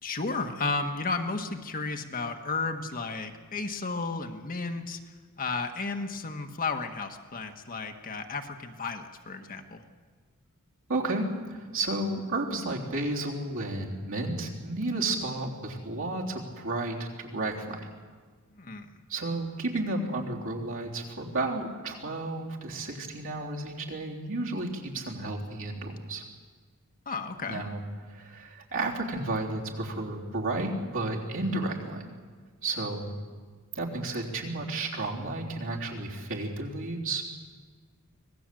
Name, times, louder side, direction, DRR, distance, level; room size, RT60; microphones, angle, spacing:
voice 1, 0.0-5.0 5.4-9.8 18.5-18.9 27.1-27.6, left 3 dB, 40° left, 5 dB, 1.5 m, -33 dB
voice 2, 10.9-17.9 19.1-26.2 27.5-27.8 28.1-32.0 32.6-33.1 33.8-37.2, right 2 dB, 60° right, -1 dB, 3.5 m, -32 dB
25.0 x 18.5 x 7.7 m, 1.5 s
head